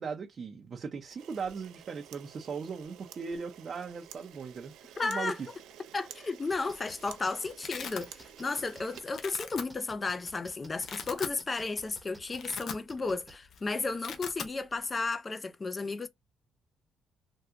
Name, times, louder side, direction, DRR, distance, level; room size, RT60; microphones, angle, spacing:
voice 1, 0.0-5.3, right 5 dB, 45° right, 0.6 m, -38 dB
Camera, 1.1-9.8, right 10 dB, 85° right, 0.5 m, -51 dB
voice 2, 5.0-5.4 5.9-16.1, left 3 dB, 30° left, 0.5 m, -33 dB
sound 1, 6.5-13.4, right 1 dB, 10° right, 0.9 m, -53 dB
Domestic sounds home sounds, 6.6-6.9 7.2-8.1 8.5-8.8 9.1-9.6 10.3-10.4 10.7-11.4 11.8-11.9 12.2-13.2 13.4-13.6 13.9-14.5, left 6 dB, 70° left, 0.7 m, -40 dB
3.6 x 2.3 x 2.8 m
cardioid pair, 90°, 0 cm